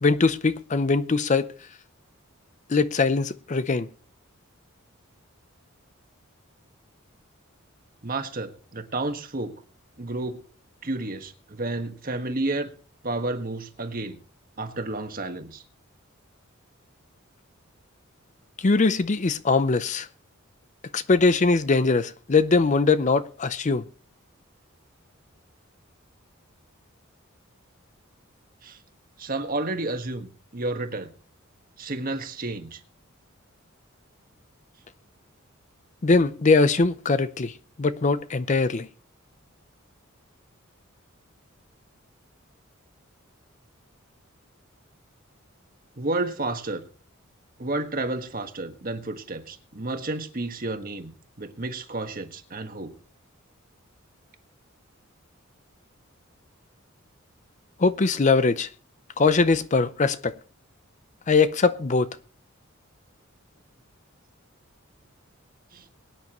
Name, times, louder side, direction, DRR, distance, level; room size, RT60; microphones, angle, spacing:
voice 1, 0.0-1.5 2.7-3.9 18.6-20.1 20.9-23.8 36.0-37.5 37.8-38.9 57.8-58.7 59.2-60.3 61.3-62.1, left 4 dB, 35° left, 0.5 m, -21 dB
voice 2, 8.0-9.6 10.0-10.4 10.8-12.7 13.0-14.2 14.6-15.6 28.6-28.8 29.2-31.1 31.8-32.8 46.0-46.8 47.6-51.1 51.4-53.0 65.7-65.8, right 2 dB, 45° right, 1.5 m, -31 dB
22.5 x 9.6 x 3.0 m
head